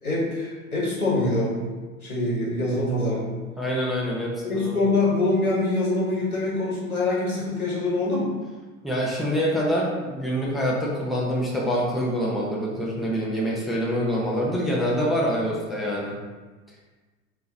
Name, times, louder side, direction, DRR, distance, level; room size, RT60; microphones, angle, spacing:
voice 1, 0.0-1.6 2.0-3.2 4.4-8.3, left 2 dB, 90° left, -6 dB, 1.3 m, -24 dB
voice 2, 3.6-4.8 8.8-16.2, equal, ahead, -5 dB, 0.7 m, -25 dB
3.8 x 2.8 x 3.8 m, 1.3 s
figure-of-eight pair, 80°, 42 cm